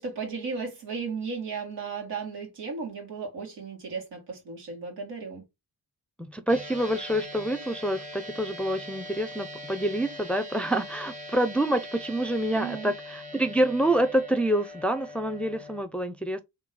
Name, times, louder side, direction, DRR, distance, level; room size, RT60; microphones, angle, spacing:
voice 1, 0.0-5.4 12.5-12.9, right 5 dB, 85° right, 2.0 m, -35 dB
voice 2, 6.2-16.4, right 1 dB, 5° left, 0.5 m, -27 dB
sound 1, 6.5-15.8, left 1 dB, 20° right, 1.0 m, -41 dB
3.1 x 3.0 x 3.9 m
cardioid pair, 65°, 41 cm